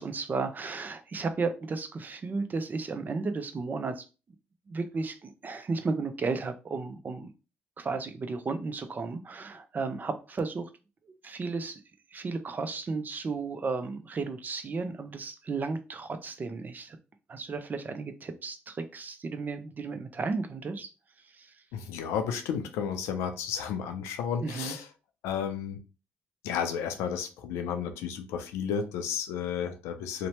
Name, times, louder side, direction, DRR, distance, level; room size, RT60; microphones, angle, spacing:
voice 1, 0.0-4.0 4.7-7.3 7.8-10.7 11.1-11.8 12.1-17.0 17.3-20.9 21.4-21.5 24.4-24.8, right 4 dB, 40° right, 9 dB, 0.5 m, -34 dB
voice 2, 21.7-24.9 25.2-25.8 26.4-30.3, left 7 dB, 90° left, 7 dB, 0.4 m, -32 dB
2.8 x 2.1 x 2.9 m, 0.31 s
supercardioid pair, 60°, 5 cm